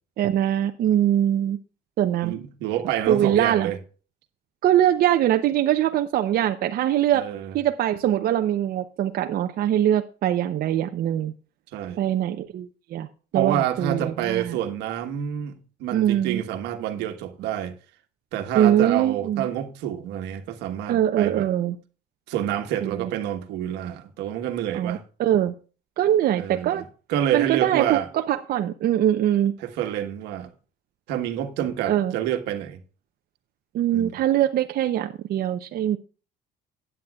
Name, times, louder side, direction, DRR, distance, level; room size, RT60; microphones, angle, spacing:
voice 1, 0.2-1.6 2.0-2.3 3.1-3.7 4.6-7.2 7.5-11.3 12.0-13.1 13.3-14.6 15.9-16.4 18.5-19.5 20.9-21.8 22.8-22.9 24.7-25.5 26.0-26.8 27.3-29.5 31.9-32.1 33.7-36.0, right 11 dB, 65° right, 0.7 m, -22 dB
voice 2, 2.2-3.8 7.1-7.6 11.7-12.0 13.3-17.7 18.3-21.5 22.3-25.0 26.4-26.8 27.1-28.1 29.6-30.5 31.1-32.8 33.9-34.1, right 11 dB, 90° right, 1.4 m, -28 dB
15.5 x 9.1 x 2.4 m
cardioid pair, 110°, 17 cm